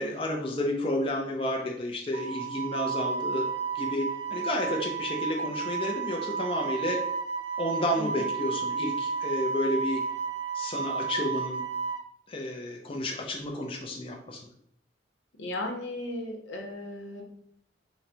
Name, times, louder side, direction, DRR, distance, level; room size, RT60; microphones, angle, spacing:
voice 1, 0.0-3.5 3.7-7.0 7.6-10.0 10.5-11.6 12.3-14.4, left 1 dB, 30° left, 0 dB, 0.4 m, -31 dB
Wind instrument woodwind instrument, 2.1-12.0, right 5 dB, 80° right, 0.5 m, -32 dB
voice 2, 15.4-17.2, left 1 dB, 85° left, 2 dB, 0.8 m, -36 dB
3.9 x 2.1 x 4.3 m, 0.69 s
head